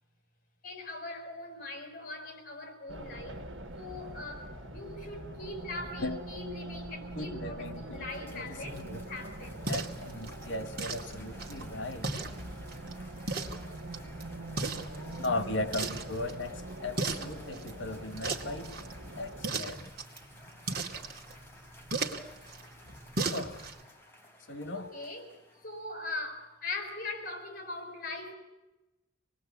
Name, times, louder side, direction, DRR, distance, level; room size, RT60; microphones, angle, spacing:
voice 1, 0.6-3.5 3.8-8.8 9.1-9.7 24.7-25.3 25.6-28.3, left 2 dB, 45° left, 5.4 m, -41 dB
Race car auto racing, 2.9-19.5, right 1 dB, 90° right, 1.8 m, -43 dB
voice 2, 7.1-9.0 9.7-12.1 15.2-18.7 19.2-19.9 23.2-23.7 24.5-24.9, left 2 dB, 80° left, 1.6 m, -37 dB
Cheering / Applause, 7.5-26.1, left 1 dB, 10° left, 3.9 m, -56 dB
sound 1, 8.6-23.8, right 3 dB, 50° right, 2.4 m, -39 dB
27.0 x 20.0 x 8.4 m
head